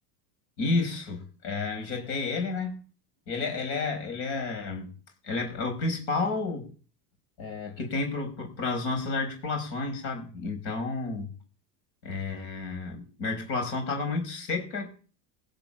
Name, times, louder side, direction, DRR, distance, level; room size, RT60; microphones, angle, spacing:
voice 1, 0.6-2.8 3.3-4.9 5.2-6.7 7.4-11.3 12.0-14.9, left 3 dB, 60° left, 4 dB, 5.5 m, -31 dB
16.0 x 5.6 x 8.8 m, 0.39 s
supercardioid pair, 120°, 49 cm